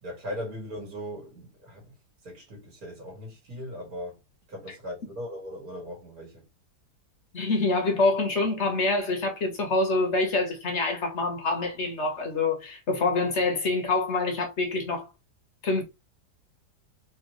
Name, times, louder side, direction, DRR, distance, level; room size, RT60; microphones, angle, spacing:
voice 1, 0.0-1.9 2.2-4.2 4.5-6.4, equal, 55° right, 2.4 m, -39 dB
voice 2, 7.3-15.1 15.6-15.8, left 3 dB, 45° left, 1.4 m, -26 dB
4.6 x 3.0 x 3.0 m
omnidirectional pair, 1.8 m